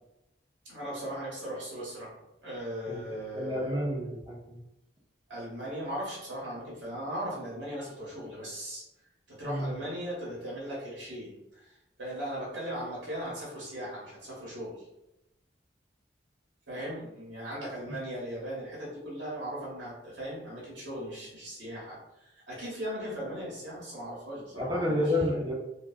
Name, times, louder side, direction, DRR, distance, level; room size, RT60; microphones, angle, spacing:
voice 1, 0.6-3.7 5.3-8.8 9.3-14.9 16.7-25.2, equal, 85° right, -6 dB, 1.0 m, -38 dB
voice 2, 3.3-4.6 9.4-9.7 24.5-25.5, left 1 dB, 25° right, -3 dB, 0.7 m, -30 dB
3.1 x 2.2 x 2.3 m, 0.90 s
head